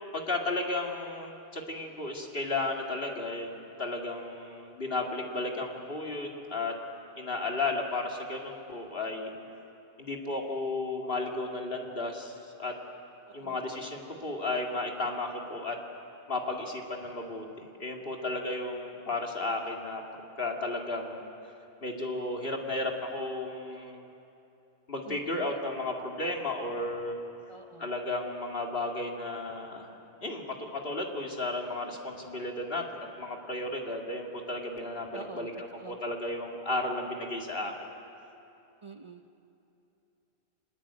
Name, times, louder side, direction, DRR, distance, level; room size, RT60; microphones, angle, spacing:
voice 1, 0.1-6.7 7.2-9.3 10.0-12.7 13.3-15.8 16.3-20.0 20.4-21.2 21.8-24.1 24.9-27.1 27.8-37.7, left 2 dB, 60° left, 1 dB, 2.7 m, -34 dB
voice 2, 13.3-13.6 25.1-25.5 27.5-27.9 35.1-36.0 38.8-39.3, right 3 dB, 30° right, 5 dB, 0.8 m, -47 dB
27.0 x 20.0 x 8.8 m, 2.8 s
omnidirectional pair, 1.1 m